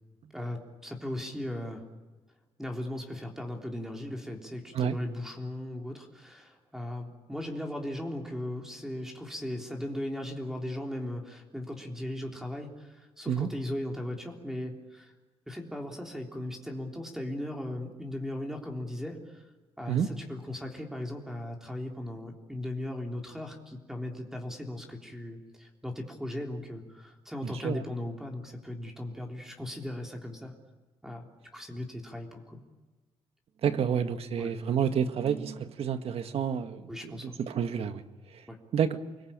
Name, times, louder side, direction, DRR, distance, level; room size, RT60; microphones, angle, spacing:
voice 1, 0.3-1.9 2.6-15.1 15.5-19.5 19.8-30.5 31.0-31.3 31.5-32.6 34.4-34.5 36.9-37.4 38.5-38.6, left 1 dB, 5° right, 2 dB, 3.6 m, -38 dB
voice 2, 27.4-27.8 33.6-38.0 38.7-39.0, right 8 dB, 65° right, 9 dB, 1.8 m, -29 dB
29.0 x 21.0 x 8.9 m, 1.2 s
cardioid pair, 120°, 11 cm